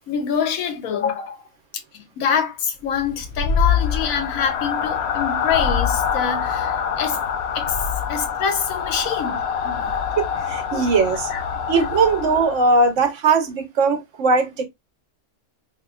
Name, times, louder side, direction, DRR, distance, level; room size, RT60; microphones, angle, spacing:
voice 1, 0.1-1.4 1.9-7.2 7.5-7.8 8.1-10.0 11.3-11.4, left 7 dB, 85° left, 1.2 m, -25 dB
sound 1, 2.9-12.9, left 7 dB, 65° left, 0.7 m, -25 dB
voice 2, 10.2-11.3 11.7-14.6, right 4 dB, 65° right, 1.0 m, -19 dB
3.6 x 2.6 x 2.3 m
omnidirectional pair, 1.4 m